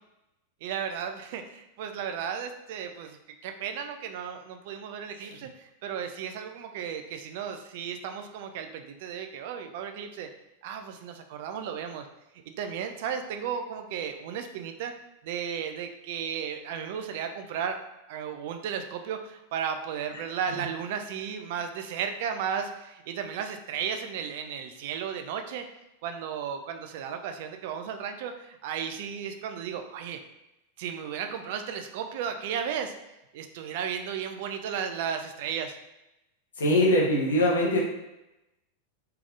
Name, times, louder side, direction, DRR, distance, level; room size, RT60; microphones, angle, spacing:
voice 1, 0.6-3.2 3.4-10.3 10.6-12.0 12.5-14.9 15.2-17.8 18.1-25.7 26.0-30.2 30.8-32.9 33.3-35.8, right 7 dB, 50° right, 6 dB, 0.3 m, -34 dB
voice 2, 36.6-37.8, left 1 dB, 65° left, -2 dB, 0.9 m, -22 dB
3.4 x 3.3 x 2.5 m, 0.92 s
figure-of-eight pair, 90°, 0 cm